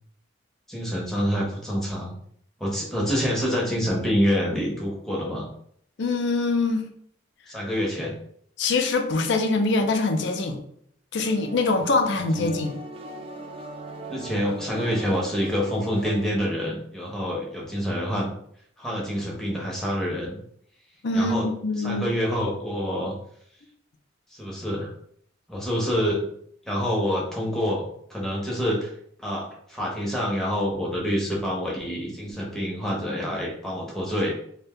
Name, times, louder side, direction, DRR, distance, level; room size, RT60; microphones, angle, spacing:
voice 1, 0.7-2.2 2.6-5.5 7.5-8.1 12.4-12.5 14.1-18.3 18.8-20.4 21.1-21.5 21.8-23.1 24.3-24.9 25.5-26.3 26.7-28.9 29.2-34.3, equal, ahead, -3 dB, 0.6 m, -27 dB
voice 2, 6.0-6.9 8.6-10.6 11.1-12.8 21.0-22.0, left 3 dB, 60° left, 5 dB, 0.4 m, -24 dB
sound 1, 11.2-16.3, right 1 dB, 30° right, 0.3 m, -39 dB
2.6 x 2.1 x 3.5 m, 0.66 s
head